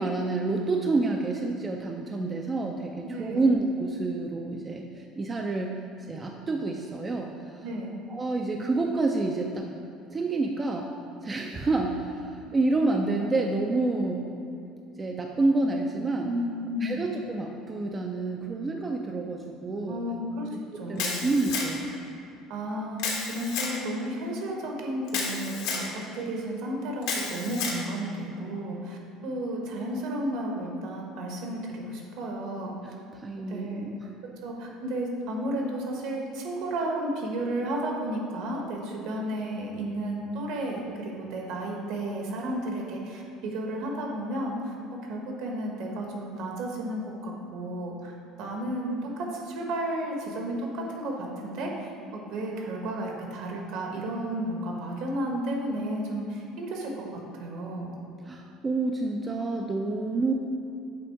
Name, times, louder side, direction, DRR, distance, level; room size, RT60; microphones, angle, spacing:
voice 1, 0.0-5.8 6.1-7.3 8.1-9.7 10.1-10.9 11.2-12.1 12.5-14.3 15.0-16.3 16.8-20.1 20.7-21.9 32.8-34.1 58.2-60.3, right 3 dB, 20° right, 2 dB, 0.3 m, -28 dB
voice 2, 3.0-3.5 7.6-8.0 16.2-17.0 19.9-20.5 20.7-21.3 22.5-32.9 33.5-33.9 34.4-44.7 45.0-57.1 57.4-58.0, right 1 dB, 65° right, 0 dB, 1.2 m, -33 dB
Camera, 21.0-21.9 23.0-23.8 25.1-25.9 27.0-27.8, left 5 dB, 80° left, 1.2 m, -31 dB
7.7 x 3.5 x 4.6 m, 2.6 s
cardioid pair, 160°, 0 cm